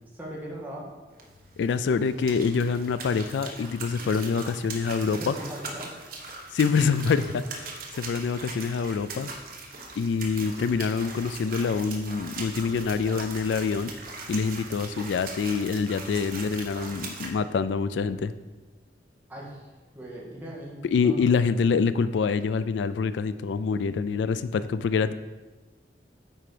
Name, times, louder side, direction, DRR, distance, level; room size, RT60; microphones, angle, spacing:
voice 1, 0.1-0.9 5.1-5.9 19.3-19.7 19.9-21.2, right 1 dB, 10° right, -4 dB, 1.7 m, -39 dB
sound 1, 1.1-17.3, right 3 dB, 55° right, 1.2 m, -40 dB
voice 2, 1.6-5.3 6.5-7.6 8.0-9.3 10.0-13.9 14.3-18.3 20.8-25.1, left 5 dB, 85° left, 14 dB, 0.3 m, -26 dB
8.9 x 4.4 x 5.0 m, 1.2 s
head